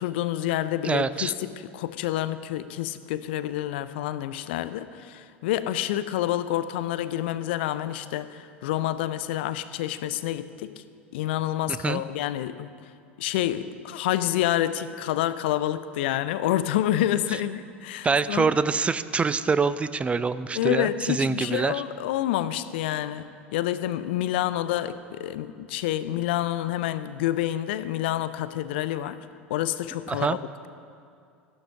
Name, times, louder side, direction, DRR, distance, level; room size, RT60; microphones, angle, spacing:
voice 1, 0.0-10.7 11.1-12.7 13.2-18.5 20.5-29.2 29.5-30.4, left 13 dB, 60° left, 14 dB, 0.6 m, -28 dB
voice 2, 0.8-1.3 11.7-12.0 18.0-21.8 30.1-30.4, right 5 dB, 20° right, 15 dB, 0.5 m, -25 dB
14.5 x 11.5 x 5.7 m, 2.4 s
figure-of-eight pair, 75°, 6 cm